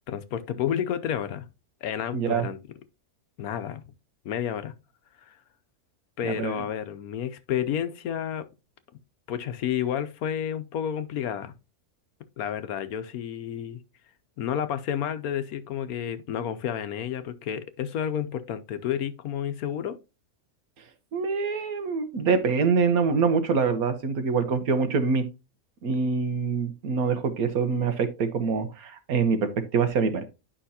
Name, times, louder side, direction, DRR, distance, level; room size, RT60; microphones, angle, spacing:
voice 1, 0.1-1.4 1.8-2.6 3.4-3.8 4.2-4.7 5.2-5.3 6.2-8.5 9.3-11.5 12.4-13.8 14.4-20.0, left 9 dB, 75° left, 1.2 m, -30 dB
voice 2, 2.1-2.5 6.2-6.6 21.1-25.2 25.8-30.3, right 5 dB, 70° right, 1.5 m, -25 dB
10.0 x 5.6 x 2.8 m
omnidirectional pair, 1.6 m